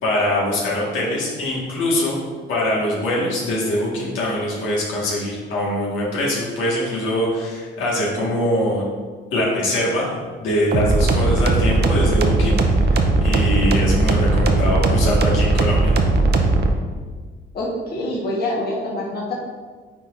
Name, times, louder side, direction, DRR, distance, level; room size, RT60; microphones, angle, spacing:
voice 1, 0.0-2.2 2.5-8.8 9.3-15.9, left 1 dB, 85° left, -5 dB, 1.8 m, -23 dB
sound 1, 10.7-16.7, right 2 dB, 55° right, 0.7 m, -18 dB
voice 2, 17.5-19.3, left 1 dB, 50° left, -4 dB, 1.4 m, -25 dB
8.9 x 4.1 x 2.6 m, 1.5 s
cardioid pair, 90°, 20 cm